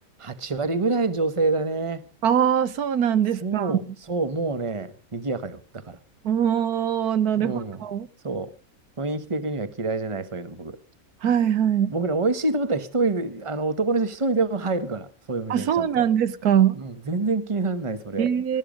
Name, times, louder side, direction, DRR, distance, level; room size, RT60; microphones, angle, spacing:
voice 1, 0.2-2.0 3.4-6.0 7.4-7.8 8.2-8.5 9.0-10.8 11.9-16.0 16.7-18.3, right 3 dB, 20° right, 1.1 m, -27 dB
voice 2, 2.2-3.7 6.2-8.1 11.2-11.9 15.5-16.8 18.2-18.6, right 9 dB, 85° right, 1.5 m, -22 dB
19.0 x 13.0 x 5.1 m
omnidirectional pair, 1.6 m